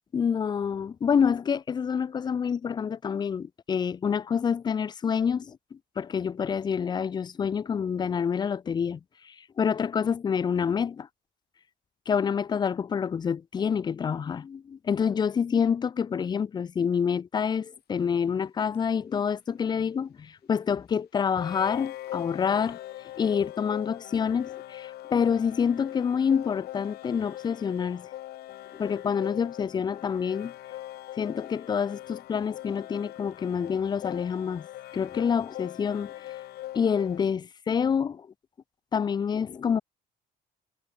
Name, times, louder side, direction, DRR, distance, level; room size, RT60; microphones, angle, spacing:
voice 1, 0.1-11.1 12.1-22.8 23.2-28.1 28.7-30.5 31.2-34.7 34.9-36.1 36.7-38.3 38.9-39.8, left 7 dB, 25° left, 0.3 m, -27 dB
sound 1, 18.7-18.8 21.4-37.2, left 14 dB, 70° left, 2.0 m, -41 dB
cardioid pair, 110°, 17 cm